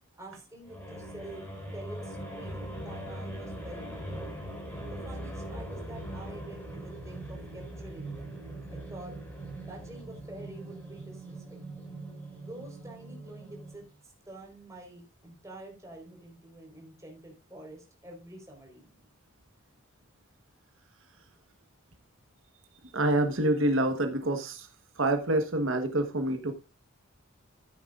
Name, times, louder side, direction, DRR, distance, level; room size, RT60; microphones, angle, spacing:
voice 1, 0.2-4.2 4.9-8.3 8.7-9.2 9.7-11.9 12.4-19.1, right 1 dB, 15° right, 0 dB, 4.4 m, -47 dB
sound 1, 0.6-13.9, right 1 dB, 10° left, 5.7 m, -41 dB
voice 2, 22.8-24.7 24.9-26.5, right 1 dB, 70° right, 6 dB, 1.3 m, -27 dB
14.0 x 9.3 x 2.5 m, 0.29 s
head